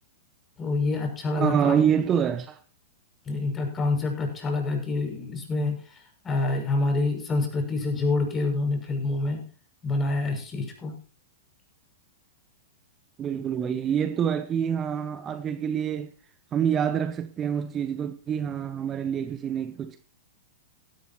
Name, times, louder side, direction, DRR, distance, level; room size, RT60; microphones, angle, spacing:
voice 1, 0.6-1.8 3.2-9.4 9.8-10.9, left 3 dB, 20° left, 6.1 m, -27 dB
voice 2, 1.4-2.6 13.2-16.1 16.5-20.0, right 8 dB, 25° right, 1.0 m, -26 dB
16.5 x 13.0 x 2.9 m
hypercardioid pair, 110°, 0 cm